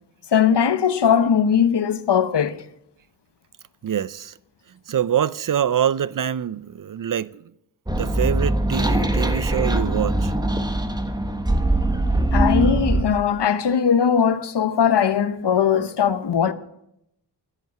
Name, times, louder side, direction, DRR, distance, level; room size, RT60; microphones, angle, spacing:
voice 1, 0.3-2.6 12.3-16.5, left 7 dB, 80° left, 1.0 m, -19 dB
voice 2, 3.8-4.3 4.9-7.3 7.9-10.3, right 9 dB, 50° right, 0.5 m, -24 dB
sound 1, 7.9-13.0, right 1 dB, 10° right, 1.3 m, -22 dB
11.0 x 10.5 x 8.4 m
wide cardioid pair, 125°, 41 cm